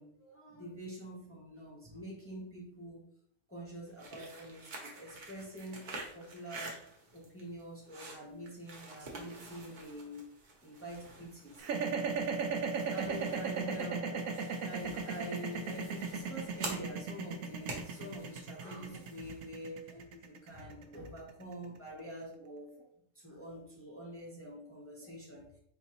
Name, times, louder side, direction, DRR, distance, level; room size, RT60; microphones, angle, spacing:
voice 1, 0.0-3.0 3.5-6.8 7.1-10.3 10.6-11.6 12.1-14.1 14.6-22.9 23.2-25.5, right 1 dB, 15° left, -4 dB, 0.6 m, -46 dB
sound 1, 3.9-19.5, right 2 dB, 45° right, 0.8 m, -48 dB
sound 2, 11.6-21.8, right 5 dB, 90° right, 1.0 m, -36 dB
4.4 x 2.6 x 2.8 m, 0.71 s
omnidirectional pair, 1.4 m